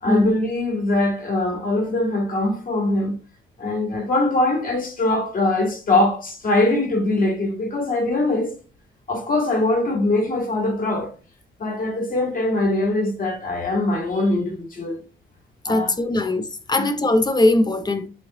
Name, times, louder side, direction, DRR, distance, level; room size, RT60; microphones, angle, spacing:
voice 1, 0.0-3.2 3.6-8.5 9.1-11.1 11.6-15.0 15.6-15.9 16.2-16.3 16.8-16.9, left 2 dB, 45° left, 1.4 m, -22 dB
voice 2, 15.7-18.1, left 2 dB, 20° left, 0.6 m, -20 dB
3.6 x 3.2 x 2.9 m
cardioid pair, 90°, 20 cm